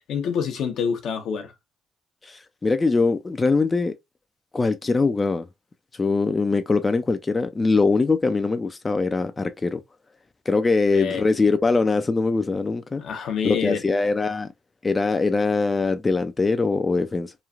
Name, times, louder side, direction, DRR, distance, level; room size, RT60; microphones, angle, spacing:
voice 1, 0.1-1.5 10.9-11.2 13.0-13.8, left 7 dB, 75° left, 0.7 m, -27 dB
voice 2, 2.2-3.9 4.5-5.5 5.9-9.8 10.5-13.0 13.4-14.5 14.8-17.3, left 3 dB, 25° left, 0.3 m, -22 dB
3.0 x 2.4 x 2.3 m
cardioid pair, 90°, 0 cm